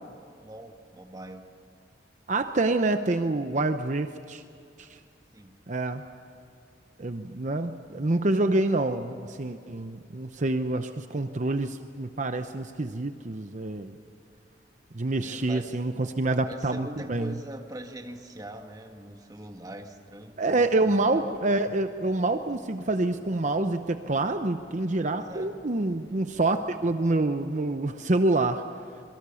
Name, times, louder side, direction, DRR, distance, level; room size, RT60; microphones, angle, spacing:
voice 1, 0.4-1.5 5.3-5.5 15.2-15.8 16.4-20.4 25.1-25.5, right 1 dB, 20° right, 4 dB, 1.6 m, -42 dB
voice 2, 2.3-4.4 4.8-5.0 5.7-6.0 7.0-13.9 14.9-17.4 20.4-28.6, right 2 dB, 45° right, 8 dB, 0.8 m, -27 dB
sound 1, 20.6-27.1, equal, 20° left, 1.6 m, -52 dB
26.5 x 23.0 x 7.1 m, 2.4 s
head